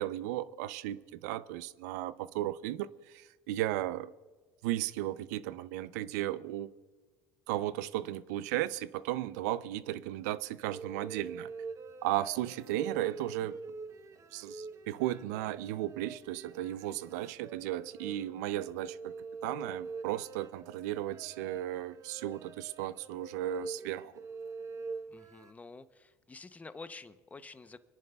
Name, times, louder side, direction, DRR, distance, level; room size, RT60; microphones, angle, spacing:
voice 1, 0.0-4.1 4.6-6.7 7.5-11.5 12.0-13.6 14.3-19.1 19.4-24.1, right 14 dB, 85° right, 0.5 m, -35 dB
sound 1, 10.7-25.5, right 4 dB, 35° right, 0.9 m, -45 dB
voice 2, 25.1-27.8, left 3 dB, 15° left, 0.7 m, -49 dB
29.0 x 10.5 x 2.3 m
supercardioid pair, 100°, 9 cm